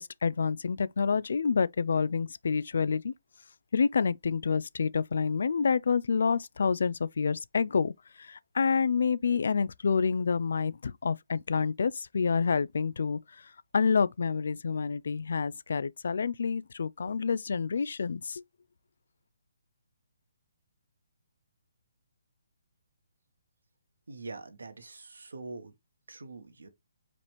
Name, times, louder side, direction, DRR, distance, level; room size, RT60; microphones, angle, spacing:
voice 1, 0.0-3.1 3.7-7.9 8.2-13.2 13.7-18.4, left 5 dB, 70° left, 0.3 m, -28 dB
voice 2, 24.1-25.7 26.1-26.7, right 3 dB, 85° right, 1.2 m, -44 dB
5.0 x 3.0 x 3.3 m
hypercardioid pair, 150°, 0 cm